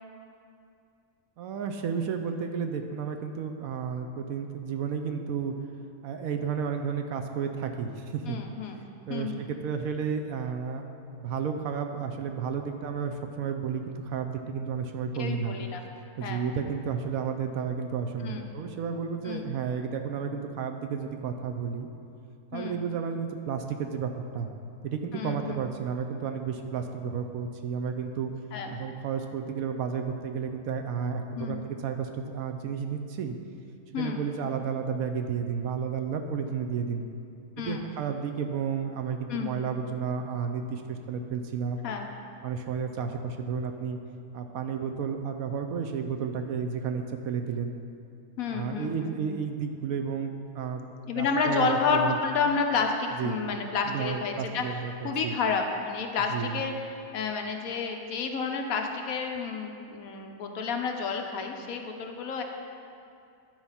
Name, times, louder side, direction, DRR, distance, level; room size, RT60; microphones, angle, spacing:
voice 1, 1.4-5.5 6.0-8.4 9.1-10.8 11.1-15.6 16.2-21.9 22.5-24.5 24.8-28.3 28.7-33.4 33.9-37.0 37.6-41.8 42.4-44.0 44.3-47.8 48.5-50.8 51.1-52.2 53.2-53.4 53.9-55.3 56.3-56.6, right 6 dB, 70° right, 5 dB, 1.0 m, -32 dB
voice 2, 8.3-8.8 9.1-9.4 15.1-15.8 16.2-16.5 18.2-18.5 19.2-19.5 22.5-22.8 25.1-25.6 28.5-28.7 31.3-31.6 33.9-34.2 37.6-37.9 39.3-39.6 41.8-42.1 48.4-49.2 51.1-62.4, left 5 dB, 70° left, 3 dB, 1.1 m, -30 dB
10.5 x 4.7 x 5.6 m, 2.5 s
omnidirectional pair, 1.6 m